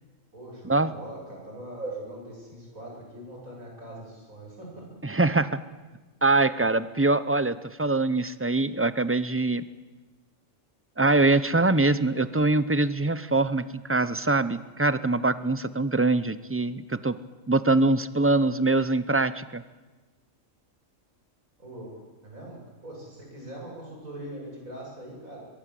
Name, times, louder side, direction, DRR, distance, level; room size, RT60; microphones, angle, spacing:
voice 1, 0.3-4.9 21.6-25.4, right 1 dB, 85° right, -1 dB, 8.0 m, -41 dB
voice 2, 5.0-5.6 6.2-9.6 11.0-17.2 17.5-19.6, right 2 dB, 20° right, 15 dB, 0.3 m, -23 dB
23.0 x 22.0 x 7.7 m, 1.3 s
omnidirectional pair, 1.4 m